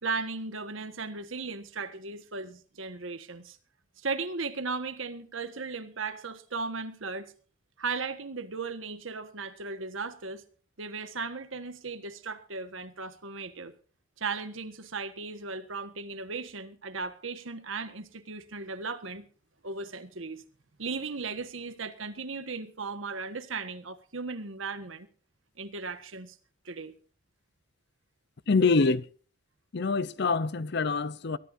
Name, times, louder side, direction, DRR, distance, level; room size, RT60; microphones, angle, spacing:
voice 1, 0.0-3.6 4.0-7.3 7.8-10.4 10.8-13.7 14.2-19.3 19.6-20.4 20.8-25.1 25.6-26.4 26.6-26.9, right 4 dB, 80° right, 1.5 m, -36 dB
voice 2, 28.5-29.1 29.7-31.4, left 4 dB, 55° left, 0.7 m, -25 dB
23.0 x 13.5 x 2.7 m
head